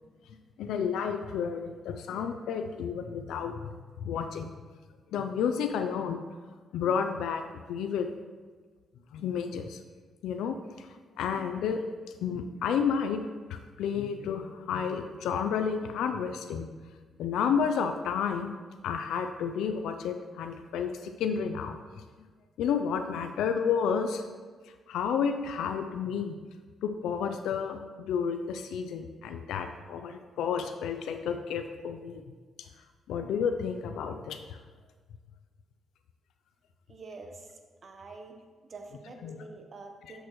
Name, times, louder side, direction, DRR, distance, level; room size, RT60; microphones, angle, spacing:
voice 1, 0.6-3.5 4.0-4.5 5.1-6.2 6.7-7.4 7.7-8.1 9.1-9.8 10.2-10.9 11.2-11.8 12.2-13.2 13.5-16.7 17.2-18.5 18.8-22.0 22.6-24.4 24.9-26.3 26.8-32.2 33.1-34.6 39.2-39.4, left 7 dB, 90° left, 6 dB, 0.4 m, -31 dB
voice 2, 36.9-38.4 38.7-40.3, right 3 dB, 45° right, 5 dB, 0.9 m, -47 dB
8.1 x 6.3 x 3.1 m, 1.4 s
cardioid pair, 85°, 0 cm